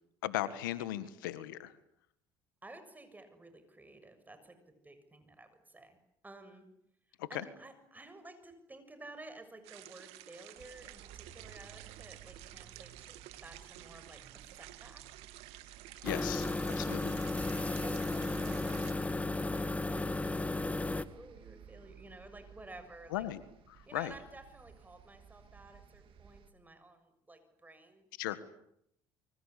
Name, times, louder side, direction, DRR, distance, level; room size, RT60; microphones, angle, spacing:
voice 1, 0.2-1.7 7.2-7.4 16.0-16.5 16.8-17.1 23.1-23.4 23.7-24.1 28.2-28.4, left 14 dB, 90° left, 13 dB, 1.7 m, -37 dB
voice 2, 2.6-4.6 4.8-6.0 6.2-6.6 7.1-15.2 16.0-16.6 17.6-23.2 23.9-28.1, right 2 dB, 15° right, 9 dB, 6.9 m, -53 dB
sound 1, 9.6-18.9, right 15 dB, 75° right, 2.7 m, -52 dB
sound 2, 10.6-26.5, right 8 dB, 55° right, 3.5 m, -57 dB
sound 3, 16.0-21.0, left 2 dB, 15° left, 1.9 m, -34 dB
28.0 x 24.5 x 8.5 m, 0.76 s
supercardioid pair, 70°, 11 cm